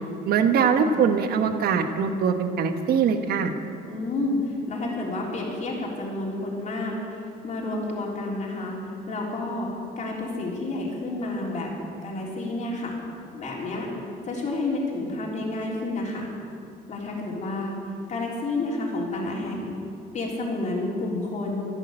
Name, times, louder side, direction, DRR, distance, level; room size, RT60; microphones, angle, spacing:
voice 1, 0.3-3.5, right 6 dB, 65° right, 7 dB, 1.3 m, -22 dB
voice 2, 3.9-9.7 10.0-11.7 12.0-12.9 13.3-13.9 14.2-16.3 16.9-17.8 18.1-19.7 20.1-21.7, left 2 dB, 45° left, -3 dB, 3.6 m, -30 dB
12.0 x 11.5 x 8.9 m, 2.6 s
cardioid pair, 110°, 17 cm